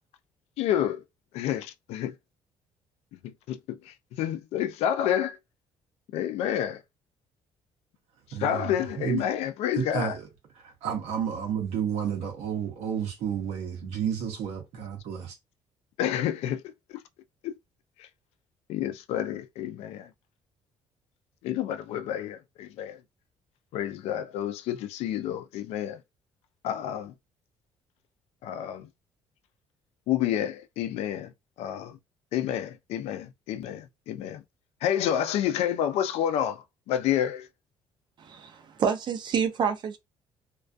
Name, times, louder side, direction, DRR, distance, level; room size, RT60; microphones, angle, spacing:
voice 1, 0.6-1.0 1.3-2.1 3.5-5.4 6.1-6.8 8.4-10.1 16.0-16.6 16.9-17.0 17.4-17.5 18.7-20.1 21.4-23.0 23.7-26.0 26.6-27.1 28.4-28.9 30.1-31.3 31.6-32.0 32.3-34.4 34.8-37.5, left 10 dB, 80° left, 0.4 m, -29 dB
voice 2, 8.3-9.2 9.7-10.3 10.5-15.4, right 8 dB, 80° right, 0.7 m, -31 dB
voice 3, 38.2-40.0, right 6 dB, 45° right, 0.5 m, -28 dB
2.3 x 2.2 x 2.5 m
cardioid pair, 115°, 10 cm